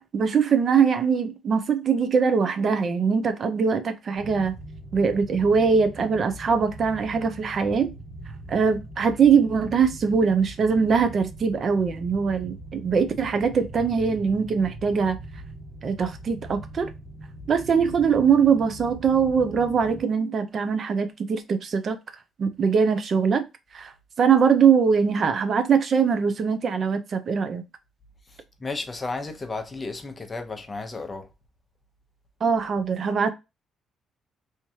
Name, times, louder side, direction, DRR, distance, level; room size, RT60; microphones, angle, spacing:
voice 1, 0.1-4.5 4.9-7.9 8.5-15.2 15.8-16.9 17.5-22.0 22.4-23.4 23.7-23.9 24.2-27.6 32.4-33.3, right 6 dB, 45° right, 0.5 m, -22 dB
sound 1, 4.2-20.0, right 1 dB, 5° left, 1.2 m, -41 dB
voice 2, 28.3-31.3, left 3 dB, 20° left, 0.7 m, -33 dB
3.5 x 3.0 x 2.7 m
cardioid pair, 135°, 0 cm